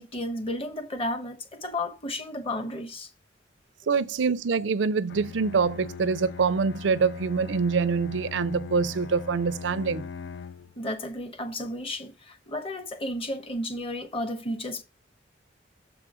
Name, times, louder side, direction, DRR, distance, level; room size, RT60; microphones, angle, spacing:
voice 1, 0.0-3.1 10.8-14.8, left 1 dB, 30° left, 1.1 m, -33 dB
voice 2, 3.9-10.0, right 5 dB, 85° right, 0.5 m, -25 dB
Bowed string instrument, 5.1-10.8, left 6 dB, 65° left, 0.4 m, -40 dB
7.3 x 4.8 x 4.9 m
head